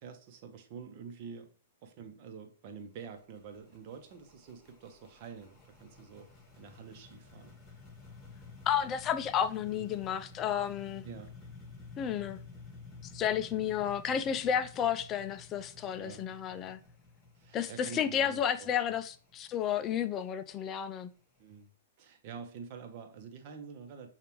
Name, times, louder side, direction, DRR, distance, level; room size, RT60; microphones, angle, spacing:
voice 1, 0.0-1.5 1.8-6.3 6.6-7.6 9.7-9.9 11.0-11.4 16.0-16.3 17.4-19.0 21.4-21.7 22.0-24.1, right 6 dB, 50° right, 0.9 m, -47 dB
sound 1, 2.8-21.6, left 3 dB, 15° left, 2.3 m, -53 dB
voice 2, 8.7-11.0 12.0-12.4 13.1-16.8 17.5-21.1, left 9 dB, 30° left, 0.3 m, -32 dB
6.7 x 2.4 x 3.0 m
hypercardioid pair, 110°, 0 cm